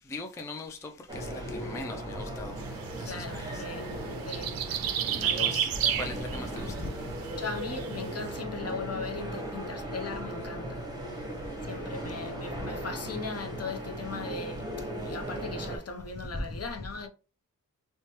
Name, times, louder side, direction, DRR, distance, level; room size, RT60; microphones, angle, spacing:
voice 1, 0.1-2.6 3.0-3.6 5.1-6.9 16.3-16.6, left 2 dB, 10° left, 0.3 m, -39 dB
sound 1, 1.1-15.8, right 1 dB, 10° right, 0.9 m, -37 dB
sound 2, 2.6-8.4, right 9 dB, 80° right, 0.5 m, -33 dB
voice 2, 3.1-4.6 5.2-5.6 7.4-11.2 11.6-17.1, left 4 dB, 45° left, 0.6 m, -39 dB
3.0 x 2.2 x 2.8 m
wide cardioid pair, 95°, 34 cm